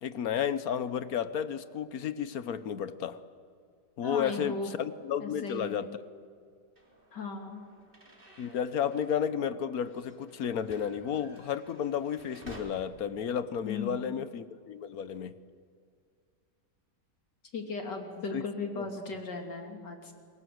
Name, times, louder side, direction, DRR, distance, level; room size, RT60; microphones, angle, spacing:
voice 1, 0.0-3.2 4.0-6.0 8.4-15.4 18.3-18.4 18.8-18.9, left 8 dB, 60° left, 13 dB, 1.3 m, -32 dB
voice 2, 4.0-4.7 5.2-5.8 7.1-7.6 13.6-14.2 17.5-20.1, left 4 dB, 75° left, 3 dB, 3.5 m, -37 dB
sound 1, 6.8-12.6, right 1 dB, 30° right, 3.8 m, -54 dB
29.5 x 20.5 x 7.9 m, 2.2 s
omnidirectional pair, 1.9 m